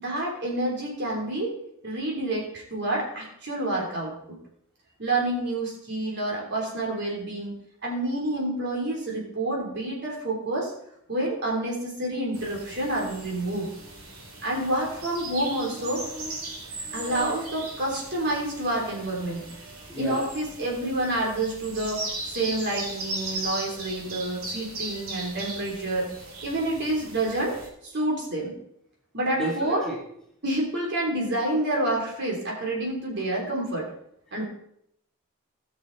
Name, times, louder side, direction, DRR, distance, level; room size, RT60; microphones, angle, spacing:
voice 1, 0.0-1.5 1.8-4.4 5.0-7.5 7.8-10.7 11.1-13.7 14.4-16.0 16.9-19.4 20.0-26.1 26.4-28.5 29.1-29.9 30.4-33.9 34.3-34.4, right 1 dB, 55° right, -2 dB, 3.4 m, -28 dB
sound 1, 12.3-27.7, right 2 dB, 80° right, 3.3 m, -38 dB
voice 2, 19.9-20.3 29.4-30.0, equal, 5° left, -5 dB, 3.1 m, -31 dB
18.0 x 6.4 x 4.0 m, 0.72 s
head